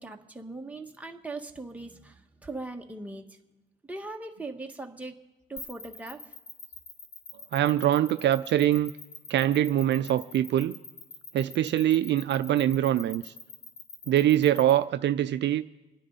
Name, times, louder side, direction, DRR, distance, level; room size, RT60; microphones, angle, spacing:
voice 1, 0.0-3.2 3.9-5.1 5.5-6.2, right 2 dB, 5° right, 2 dB, 1.5 m, -40 dB
sound 1, 5.6-14.7, left 5 dB, 60° left, 2.0 m, -44 dB
voice 2, 7.5-8.9 9.3-10.7 11.3-13.3 14.1-15.6, right 12 dB, 65° right, 11 dB, 0.5 m, -24 dB
26.5 x 9.8 x 4.1 m, 1.1 s
cardioid pair, 90°, 20 cm